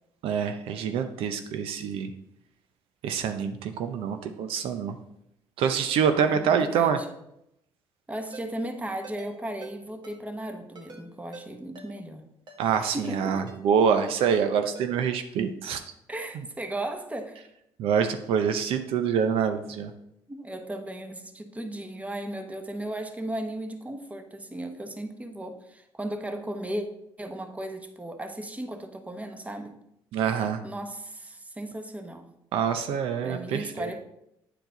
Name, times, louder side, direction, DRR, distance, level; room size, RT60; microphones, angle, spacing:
voice 1, 0.2-2.1 3.0-5.0 5.6-7.0 12.6-15.8 17.8-19.9 30.1-30.6 32.5-33.9, right 7 dB, 75° right, 8 dB, 0.6 m, -26 dB
voice 2, 6.3-7.1 8.1-12.2 12.9-13.6 16.1-17.4 20.3-26.8 27.2-29.8 30.6-32.3 33.2-34.0, right 1 dB, 15° right, 6 dB, 1.1 m, -36 dB
Ringtone, 8.3-8.5 9.0-9.3 9.6-9.7 10.0-10.2 10.8-11.0 11.3-11.5 11.8-11.9 12.5-12.7 13.0-13.2 13.5-13.6 14.2-14.4 14.8-14.9, right 3 dB, 50° right, 1.6 m, -45 dB
9.1 x 4.6 x 3.9 m, 0.80 s
supercardioid pair, 80°, 10 cm